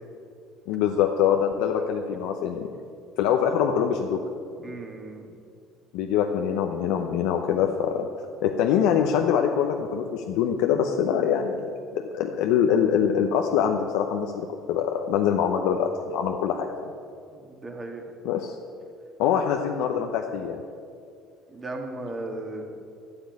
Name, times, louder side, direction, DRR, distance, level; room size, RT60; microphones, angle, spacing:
voice 1, 0.7-2.7 3.2-4.2 5.9-8.1 8.4-16.9 18.2-18.6 19.2-20.6, left 8 dB, 80° left, 3 dB, 0.8 m, -24 dB
voice 2, 4.6-5.3 17.5-18.0 21.5-22.7, right 2 dB, 25° right, 2 dB, 2.1 m, -36 dB
12.0 x 7.1 x 9.5 m, 2.4 s
cardioid pair, 110°, 0 cm